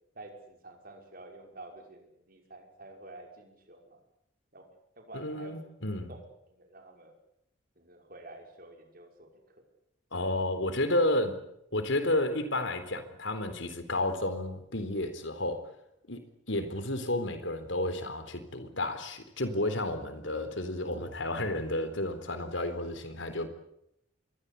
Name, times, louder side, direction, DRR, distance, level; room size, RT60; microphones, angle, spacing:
voice 1, 0.1-4.0 4.5-4.7 5.0-5.6 6.1-6.2 6.5-7.1 7.8-9.6, right 2 dB, 45° right, 3 dB, 5.8 m, -49 dB
voice 2, 5.1-6.1 10.1-11.4 11.7-15.7 16.1-23.5, left 1 dB, 70° left, 10 dB, 3.9 m, -31 dB
26.5 x 22.0 x 8.4 m, 0.76 s
head